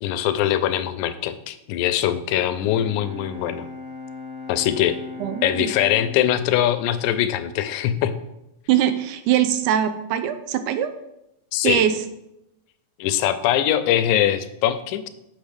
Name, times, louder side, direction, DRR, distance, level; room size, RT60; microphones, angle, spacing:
voice 1, 0.0-3.7 4.5-5.0 5.4-8.1 11.5-11.8 13.0-15.1, left 11 dB, 85° left, 11 dB, 2.0 m, -22 dB
Bowed string instrument, 2.3-7.9, left 3 dB, 35° right, 1.0 m, -39 dB
voice 2, 5.2-5.7 8.7-10.9 11.6-11.9, right 10 dB, 90° right, 10 dB, 2.1 m, -22 dB
6.3 x 6.0 x 5.2 m, 0.87 s
omnidirectional pair, 3.5 m